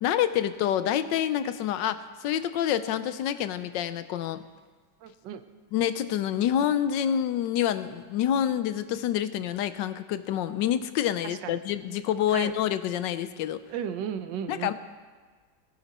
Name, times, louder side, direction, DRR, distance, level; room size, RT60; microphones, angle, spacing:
voice 1, 0.0-4.4 5.7-13.6 14.5-14.7, left 10 dB, 80° left, 12 dB, 1.3 m, -27 dB
voice 2, 5.0-5.4 11.2-11.6 12.3-12.5 13.7-14.7, right 8 dB, 75° right, 10 dB, 1.4 m, -34 dB
18.0 x 10.0 x 4.2 m, 1.5 s
omnidirectional pair, 2.0 m